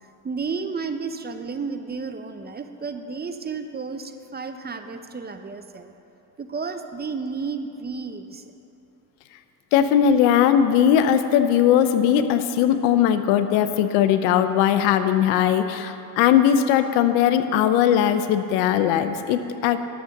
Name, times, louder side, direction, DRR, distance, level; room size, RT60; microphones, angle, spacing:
voice 1, 0.2-5.9 6.4-8.4, right 4 dB, 25° right, 8 dB, 0.7 m, -32 dB
voice 2, 9.7-19.8, left 9 dB, 90° left, 11 dB, 0.7 m, -19 dB
11.0 x 7.1 x 6.5 m, 2.8 s
supercardioid pair, 80°, 42 cm